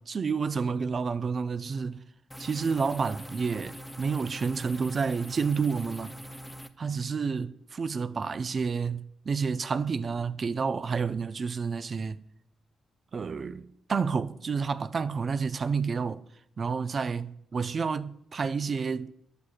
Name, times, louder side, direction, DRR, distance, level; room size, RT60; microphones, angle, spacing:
voice 1, 0.0-2.0 2.4-6.1 6.8-12.2 13.1-16.2 16.6-19.1, right 5 dB, 45° right, 0.3 m, -30 dB
sound 1, 2.3-6.7, equal, 5° left, 0.5 m, -43 dB
8.4 x 7.9 x 2.4 m
cardioid pair, 75°, 0 cm